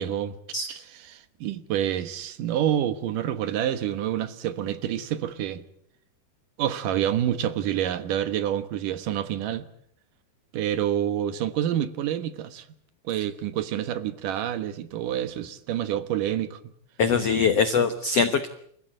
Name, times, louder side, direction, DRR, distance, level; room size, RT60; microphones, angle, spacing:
voice 1, 0.0-0.3 0.7-5.6 6.6-9.7 10.5-12.7 13.0-16.6, right 10 dB, 65° right, 2.4 m, -28 dB
voice 2, 17.0-18.5, left 5 dB, 80° left, 1.4 m, -22 dB
29.0 x 15.0 x 9.0 m
omnidirectional pair, 4.7 m